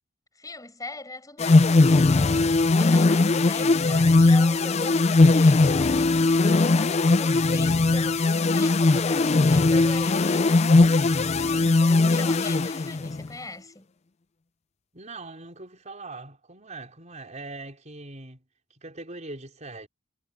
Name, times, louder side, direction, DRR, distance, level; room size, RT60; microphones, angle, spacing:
voice 1, 0.3-13.9, left 2 dB, 15° left, 7.9 m, -41 dB
sound 1, 1.4-13.3, left 3 dB, 35° left, 0.4 m, -19 dB
voice 2, 14.9-18.4 18.8-19.9, right 2 dB, 35° right, 5.0 m, -41 dB
head